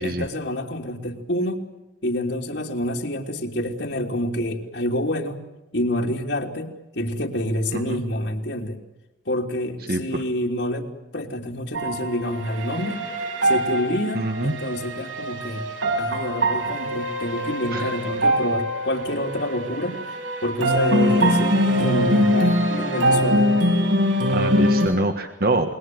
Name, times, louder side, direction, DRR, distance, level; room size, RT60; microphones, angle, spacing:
voice 1, 0.0-1.6 2.0-5.4 5.7-8.8 9.2-10.9 11.1-13.0 13.4-15.7 16.0-20.0 20.4-23.5, left 1 dB, 65° left, 1 dB, 3.3 m, -27 dB
voice 2, 9.9-10.2 14.1-14.5 17.7-17.9 24.3-25.7, right 2 dB, 50° right, 6 dB, 1.6 m, -25 dB
sound 1, 11.7-24.9, equal, 85° right, 6.8 m, -23 dB
28.0 x 22.5 x 7.9 m, 0.96 s
head